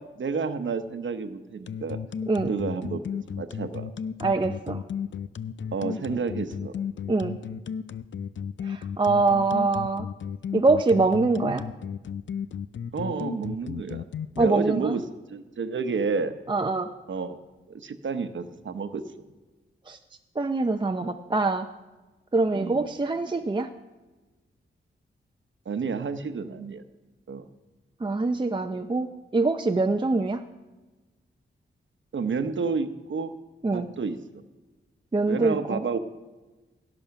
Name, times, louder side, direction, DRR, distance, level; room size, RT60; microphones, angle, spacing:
voice 1, 0.0-2.0 2.4-3.9 5.7-6.7 12.9-14.0 14.4-15.0 15.3-16.3 17.1-17.4 17.7-19.0 22.5-22.9 25.7-26.8 27.3-27.4 32.1-33.3 33.7-34.4 35.3-36.0, right 5 dB, 70° right, 9 dB, 0.9 m, -30 dB
sound 1, 1.7-14.5, left 7 dB, 65° left, 0.5 m, -34 dB
voice 2, 4.2-4.8 7.1-7.4 8.6-10.1 10.5-11.7 14.4-14.9 16.5-16.9 19.9-20.0 20.4-21.7 22.3-23.7 28.0-30.4 33.6-33.9 35.1-35.9, right 3 dB, 25° right, 5 dB, 0.5 m, -24 dB
17.0 x 7.1 x 5.9 m, 1.2 s
wide cardioid pair, 100°, 20 cm